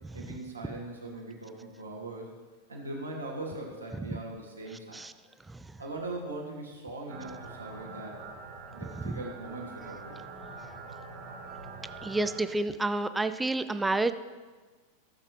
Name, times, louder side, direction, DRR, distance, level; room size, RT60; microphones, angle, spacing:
voice 1, 0.1-2.3 2.7-5.0 5.8-8.2 8.7-10.2, right 2 dB, 80° right, -3 dB, 1.8 m, -40 dB
sound 1, 7.1-12.4, right 4 dB, 40° right, 1.5 m, -44 dB
voice 2, 12.0-14.1, right 2 dB, 10° right, 12 dB, 0.4 m, -29 dB
15.5 x 7.3 x 3.2 m, 1.4 s
figure-of-eight pair, 90°, 0 cm